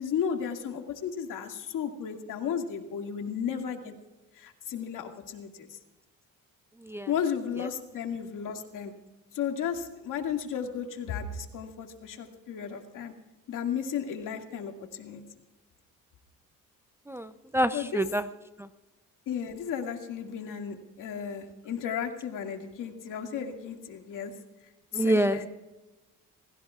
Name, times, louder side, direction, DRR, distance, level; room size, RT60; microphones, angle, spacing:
voice 1, 0.0-3.9 4.4-5.8 7.1-8.9 9.3-13.1 13.5-15.2 17.7-18.0 19.3-24.3 24.9-25.5, left 7 dB, 70° left, 3 dB, 2.2 m, -34 dB
voice 2, 6.8-7.1 7.6-7.7 17.1-18.3 18.6-18.7 24.9-25.5, right 1 dB, 10° right, 10 dB, 0.5 m, -27 dB
28.0 x 16.5 x 2.4 m, 1.1 s
cardioid pair, 110°, 33 cm